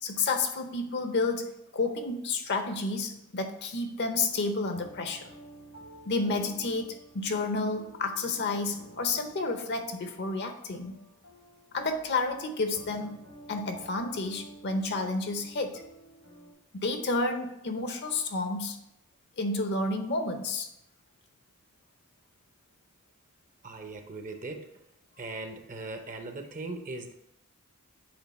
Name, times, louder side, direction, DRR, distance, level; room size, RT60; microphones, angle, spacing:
voice 1, 0.0-5.3 6.1-11.0 11.7-13.2 13.5-15.8 16.7-18.8 19.4-20.7, left 3 dB, 50° left, 6 dB, 0.7 m, -30 dB
sound 1, 4.2-16.5, right 1 dB, 90° left, 2.1 m, -52 dB
voice 2, 23.6-24.7 25.2-27.1, right 2 dB, 35° right, 5 dB, 0.6 m, -39 dB
7.9 x 3.6 x 4.1 m, 0.82 s
head